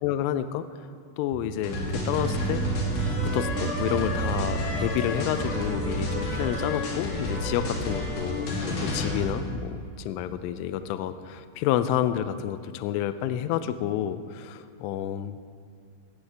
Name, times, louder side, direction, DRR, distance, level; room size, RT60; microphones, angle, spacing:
voice 1, 0.0-0.6 1.2-2.6 3.2-15.4, left 11 dB, 85° left, 11 dB, 3.0 m, -29 dB
sound 1, 1.3-12.4, right 8 dB, 80° right, 2.9 m, -35 dB
sound 2, 1.6-9.5, left 2 dB, 55° left, 3.6 m, -30 dB
19.5 x 14.5 x 3.4 m, 2.2 s
omnidirectional pair, 5.9 m